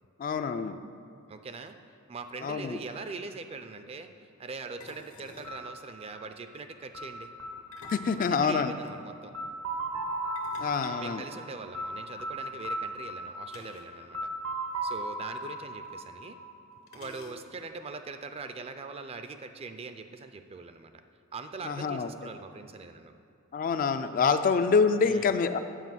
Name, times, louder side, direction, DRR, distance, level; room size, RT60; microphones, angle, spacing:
voice 1, 0.2-0.8 2.4-2.8 7.9-8.7 10.6-11.2 21.6-22.1 23.5-25.6, left 5 dB, 40° left, 9 dB, 0.3 m, -26 dB
voice 2, 1.3-1.8 2.1-4.1 4.4-7.3 8.2-9.3 11.0-14.3 14.8-16.4 16.9-20.9 21.3-23.1 25.0-25.3, right 4 dB, 30° right, 8 dB, 0.4 m, -42 dB
sound 1, 2.8-3.0 4.8-5.6 7.5-8.9 10.4-12.0 13.5-14.0 14.3-14.4 14.7-14.8 15.8-15.9 16.9-17.7, left 4 dB, 75° left, 0.9 m, -50 dB
sound 2, 5.4-17.2, right 1 dB, 75° right, 0.9 m, -38 dB
8.2 x 4.8 x 7.4 m, 2.5 s
head